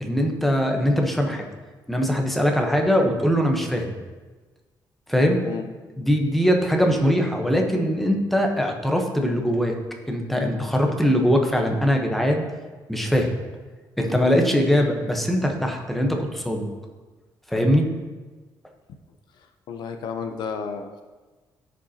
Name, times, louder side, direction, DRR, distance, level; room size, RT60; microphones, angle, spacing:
voice 1, 0.0-1.5 1.9-3.9 5.1-5.4 6.0-9.7 10.1-12.4 12.9-13.3 14.0-16.6 17.5-17.8, equal, ahead, 2 dB, 0.9 m, -21 dB
voice 2, 19.3-21.0, left 6 dB, 70° left, 6 dB, 0.7 m, -32 dB
14.0 x 5.3 x 2.8 m, 1.3 s
cardioid pair, 140°, 8 cm